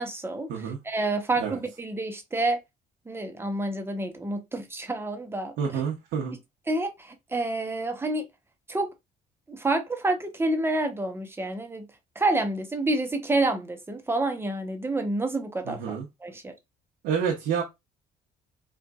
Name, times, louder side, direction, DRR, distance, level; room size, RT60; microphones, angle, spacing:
voice 1, 0.0-0.5 0.8-2.6 3.1-5.8 6.7-8.2 8.7-8.9 9.5-11.8 12.2-16.5, right 2 dB, 15° right, 0.9 m, -28 dB
voice 2, 5.6-6.4 15.6-16.0 17.0-17.6, right 7 dB, 85° right, 1.0 m, -28 dB
4.4 x 2.5 x 2.2 m
cardioid pair, 110°, 17 cm